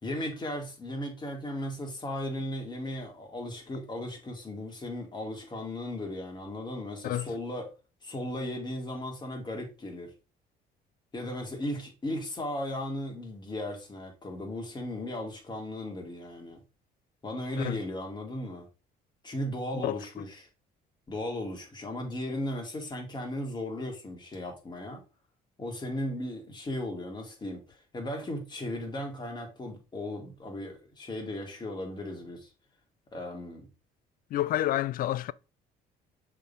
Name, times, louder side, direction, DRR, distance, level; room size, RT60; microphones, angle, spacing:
voice 1, 0.0-7.7 8.0-10.1 11.1-16.6 17.2-18.7 19.2-20.5 21.1-25.0 25.6-32.5 33.1-33.7, left 1 dB, 25° left, 2.1 m, -36 dB
voice 2, 34.3-35.3, left 13 dB, 60° left, 0.4 m, -29 dB
6.3 x 3.7 x 4.1 m
cardioid pair, 110°, 17 cm